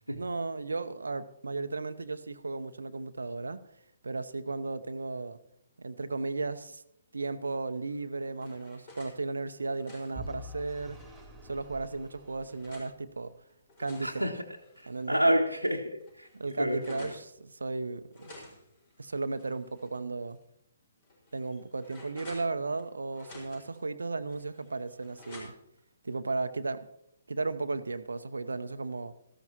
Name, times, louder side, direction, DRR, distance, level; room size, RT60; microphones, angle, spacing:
voice 1, 0.1-3.6 4.0-5.4 5.8-6.8 7.1-11.0 11.5-13.3 13.8-14.2 14.9-15.2 16.3-18.4 19.0-20.4 21.3-25.5 26.0-26.9 27.3-29.1, right 3 dB, 70° right, 11 dB, 0.8 m, -35 dB
sound 1, 7.9-9.2 9.6-11.2 11.8-12.9 13.5-15.2 15.6-15.7 16.0-17.2 18.1-20.0 20.3-20.4 21.0-22.8 23.1-23.8 24.3-25.8, left 2 dB, 35° left, 4.8 m, -52 dB
Vehicle / Engine, 10.1-13.2, equal, ahead, 3.0 m, -46 dB
voice 2, 14.0-14.5 14.8-16.3 16.6-17.1, equal, 90° right, -1 dB, 1.1 m, -29 dB
17.5 x 14.5 x 2.9 m, 0.75 s
figure-of-eight pair, 130°, 0 cm